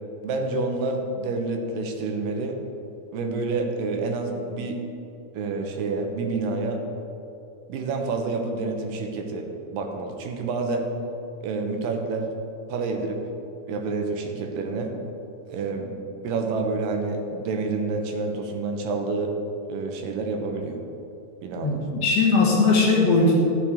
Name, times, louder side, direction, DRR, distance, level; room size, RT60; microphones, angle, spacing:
voice 1, 0.2-2.6 3.1-4.8 5.3-6.8 7.7-10.9 11.4-12.3 12.7-13.2 13.7-14.9 15.5-16.0 16.2-19.3 19.7-20.8 21.4-21.8, right 3 dB, 85° right, 3 dB, 2.5 m, -28 dB
voice 2, 21.6-23.4, left 3 dB, 60° left, -2 dB, 1.9 m, -19 dB
13.0 x 6.7 x 3.5 m, 2.8 s
omnidirectional pair, 3.9 m